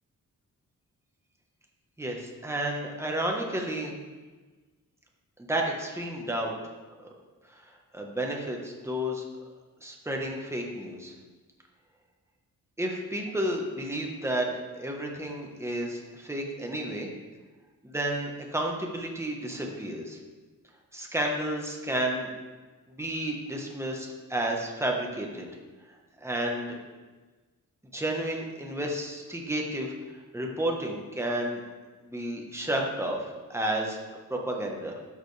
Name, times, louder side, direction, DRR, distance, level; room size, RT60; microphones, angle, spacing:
voice 1, 2.0-4.0 5.4-6.5 7.5-9.2 9.8-11.1 12.8-14.5 14.7-17.1 17.8-20.2 20.9-22.3 22.9-25.5 26.2-26.8 27.9-29.9 30.3-31.6 32.0-34.0 34.3-34.9, right 1 dB, 10° right, 0 dB, 1.2 m, -31 dB
12.0 x 6.8 x 3.3 m, 1.3 s
wide cardioid pair, 165°, 33 cm